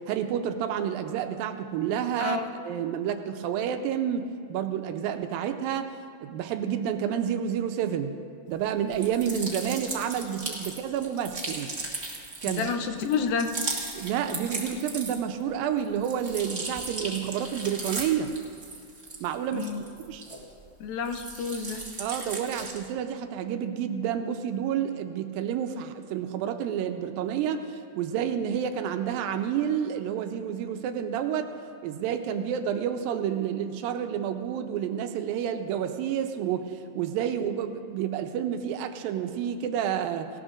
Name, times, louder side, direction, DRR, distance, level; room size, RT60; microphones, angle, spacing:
voice 1, 0.1-5.9 6.2-8.1 8.5-11.7 12.4-12.7 14.0-18.3 19.2-19.7 20.1-20.2 22.0-31.5 31.8-40.3, right 9 dB, 85° right, 7 dB, 2.4 m, -29 dB
voice 2, 2.2-2.5 12.5-13.5 19.5-19.8 20.8-21.9, left 6 dB, 80° left, 5 dB, 2.5 m, -29 dB
sound 1, 8.9-15.4 15.8-20.7 21.0-22.9, right 3 dB, 40° right, 0.9 m, -37 dB
18.0 x 18.0 x 2.5 m, 2.2 s
omnidirectional pair, 4.2 m